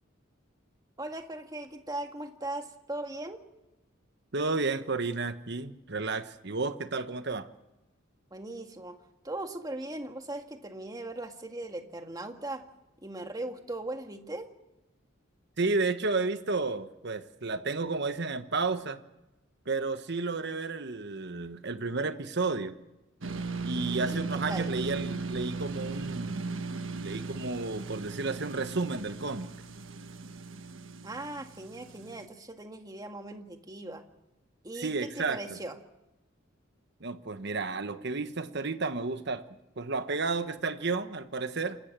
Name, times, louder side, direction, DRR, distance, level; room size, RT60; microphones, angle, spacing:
voice 1, 1.0-3.4 8.3-9.0 9.2-12.6 13.0-14.5 24.0-24.7 31.0-34.1 34.6-35.8, right 2 dB, 20° right, 5 dB, 1.8 m, -39 dB
voice 2, 4.3-7.5 15.6-19.0 19.7-22.8 23.6-26.7 27.0-29.5 34.8-35.6 37.0-39.5 39.8-41.8, right 3 dB, 60° right, 10 dB, 1.2 m, -32 dB
sound 1, 23.2-32.3, right 4 dB, 75° right, 1.4 m, -37 dB
28.0 x 13.5 x 7.6 m, 0.99 s
head